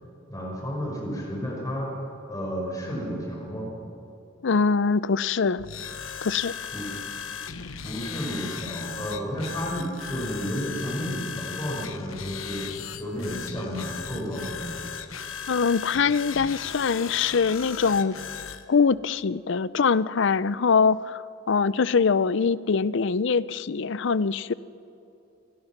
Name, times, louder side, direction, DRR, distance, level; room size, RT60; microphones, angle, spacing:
voice 1, 0.3-1.9 2.3-3.7 6.7-7.0 7.8-14.8, equal, 20° left, -2 dB, 5.5 m, -32 dB
voice 2, 4.4-5.7 6.2-6.5 15.5-18.2 18.7-24.5, left 5 dB, 60° left, 18 dB, 0.5 m, -23 dB
sound 1, 5.6-18.6, left 7 dB, 85° left, 1.1 m, -37 dB
27.5 x 20.5 x 5.9 m, 2.9 s
head